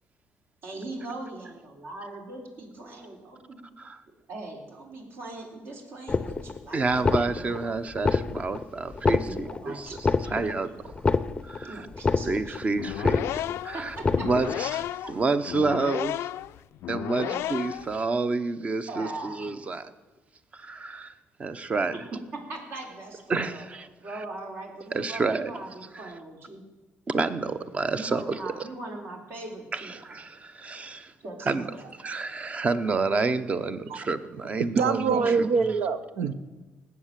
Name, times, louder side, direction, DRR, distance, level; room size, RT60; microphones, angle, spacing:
voice 1, 0.6-3.6 4.3-7.6 9.1-10.9 11.6-12.7 13.7-14.2 17.2-17.4 18.9-19.4 22.0-23.7 24.0-26.6 28.0-29.9 31.2-31.9 35.1-35.3, right 2 dB, 60° right, 1 dB, 3.9 m, -40 dB
sound 1, 6.1-6.6 6.9-7.6 8.0-8.6 8.9-9.6 10.0-10.6 10.9-11.6 11.9-12.6 12.9-13.6 14.0-14.6, left 4 dB, 20° left, 0.6 m, -26 dB
voice 2, 6.7-9.9 10.3-10.9 11.4-11.8 12.2-13.9 14.2-16.3 16.9-19.9 20.5-21.1 21.4-21.9 23.3-23.9 24.9-25.5 27.1-28.5 29.7-31.1 31.5-31.6 32.0-35.5, right 3 dB, 30° right, 12 dB, 0.9 m, -29 dB
sound 2, 12.7-18.0, left 13 dB, 75° left, 0.3 m, -33 dB
voice 3, 34.7-36.3, right 5 dB, 75° right, 11 dB, 1.0 m, -24 dB
18.5 x 8.3 x 7.6 m, 1.2 s
cardioid pair, 115°, 4 cm